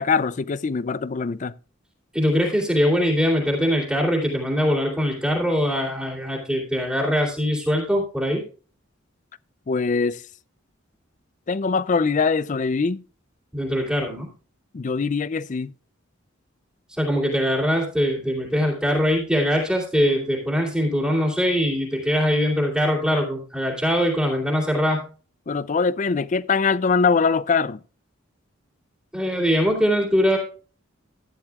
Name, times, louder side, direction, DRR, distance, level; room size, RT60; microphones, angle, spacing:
voice 1, 0.0-1.5 9.7-10.2 11.5-13.0 14.7-15.7 25.5-27.8, left 5 dB, 40° left, 0.4 m, -22 dB
voice 2, 2.1-8.4 13.5-14.3 17.0-25.1 29.1-30.4, equal, 5° right, 2.7 m, -22 dB
14.5 x 10.5 x 2.3 m
head